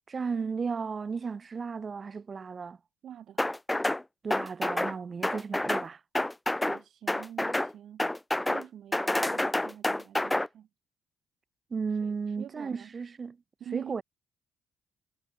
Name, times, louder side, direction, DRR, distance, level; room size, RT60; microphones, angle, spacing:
voice 1, 0.1-2.8 4.2-6.0 11.7-13.4 13.7-14.0, right 5 dB, 45° right, 2.9 m, -34 dB
voice 2, 3.0-3.4 6.6-8.1 8.4-10.7 12.4-12.9 13.6-13.9, right 10 dB, 65° right, 1.0 m, -45 dB
sound 1, 3.4-4.0 4.3-4.9 5.2-5.9 6.1-6.8 7.1-7.7 8.0-8.6 8.9-10.5, left 1 dB, 10° left, 0.7 m, -28 dB
supercardioid pair, 60°, 0 cm